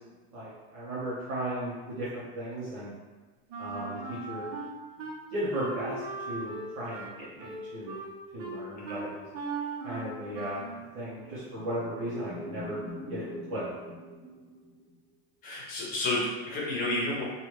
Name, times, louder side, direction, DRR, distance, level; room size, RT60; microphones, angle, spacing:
voice 1, 0.3-2.9 3.6-4.0 4.2-4.4 5.3-8.0 8.3-9.2 9.8-10.6 10.9-12.8 13.1-13.6, right 1 dB, 55° right, -10 dB, 1.0 m, -36 dB
Wind instrument woodwind instrument, 3.5-5.2 5.5-10.8, right 3 dB, 85° right, 0.8 m, -39 dB
sound 1, 10.9-14.9, equal, 5° left, 0.4 m, -43 dB
voice 2, 15.4-17.2, left 1 dB, 30° left, -5 dB, 0.8 m, -31 dB
2.9 x 2.4 x 3.2 m, 1.4 s
cardioid pair, 170°, 30 cm